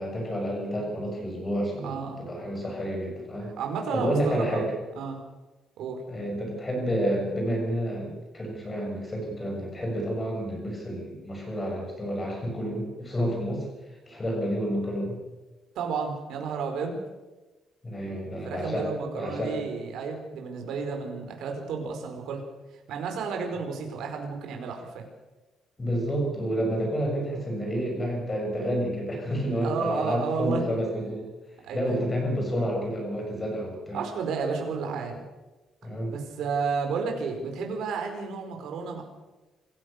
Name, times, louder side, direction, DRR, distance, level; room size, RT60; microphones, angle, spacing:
voice 1, 0.0-3.5 3.9-4.7 6.1-13.7 14.1-15.2 17.8-19.6 25.8-31.3 31.7-34.0 35.8-36.2, equal, 15° left, 1 dB, 6.8 m, -30 dB
voice 2, 1.8-2.2 3.6-4.7 5.0-5.2 5.8-6.0 15.7-17.0 18.4-22.4 22.9-25.0 29.6-30.6 31.6-31.9 33.9-35.2 36.1-39.0, right 5 dB, 70° right, 3 dB, 4.9 m, -32 dB
26.5 x 15.5 x 6.7 m, 1.1 s
cardioid pair, 170°, 0 cm